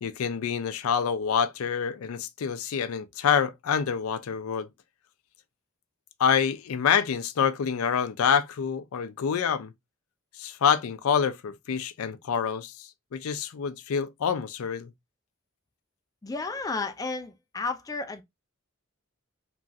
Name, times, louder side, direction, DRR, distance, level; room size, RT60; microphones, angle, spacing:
voice 1, 0.0-4.7 6.2-9.7 10.4-14.9, left 7 dB, 80° left, 0.4 m, -27 dB
voice 2, 16.2-18.2, left 3 dB, 15° left, 0.4 m, -32 dB
3.0 x 2.4 x 2.6 m
head